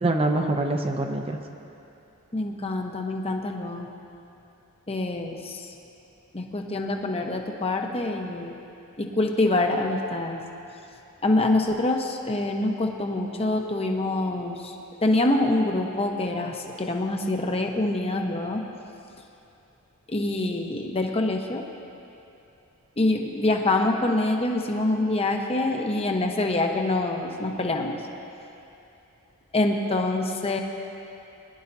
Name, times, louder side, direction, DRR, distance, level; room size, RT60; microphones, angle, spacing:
voice 1, 0.0-1.4, right 2 dB, 25° right, 3 dB, 0.6 m, -24 dB
voice 2, 2.3-3.9 4.9-5.7 6.3-8.5 9.0-10.4 11.2-14.7 15.0-18.7 20.1-21.6 23.0-28.0 29.5-30.6, left 2 dB, 25° left, 2 dB, 0.9 m, -25 dB
22.0 x 11.0 x 2.7 m, 2.8 s
head